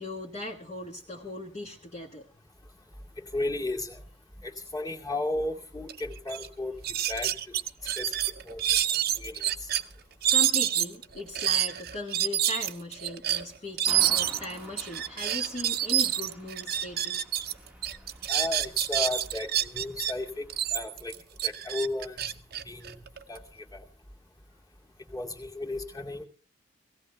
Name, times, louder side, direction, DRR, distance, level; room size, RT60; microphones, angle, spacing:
voice 1, 0.0-2.3 7.7-8.0 8.6-8.8 10.3-17.2 17.5-17.7, left 1 dB, 35° left, -2 dB, 1.5 m, -38 dB
voice 2, 3.3-4.0 4.4-6.8 7.1-7.3 8.0-8.1 8.5-8.8 9.2-9.7 18.3-21.1 21.4-22.3 22.6-23.0 23.3-23.4 23.7-23.8 25.1-26.3, left 2 dB, 20° left, -2 dB, 2.3 m, -34 dB
sound 1, 5.9-6.0 6.3-6.5 6.8-9.8 10.2-17.5 17.8-20.1 20.5-23.4, right 11 dB, 50° right, 0.8 m, -27 dB
sound 2, 13.8-20.7, right 1 dB, 5° right, 1.1 m, -49 dB
17.5 x 17.0 x 3.4 m, 0.40 s
head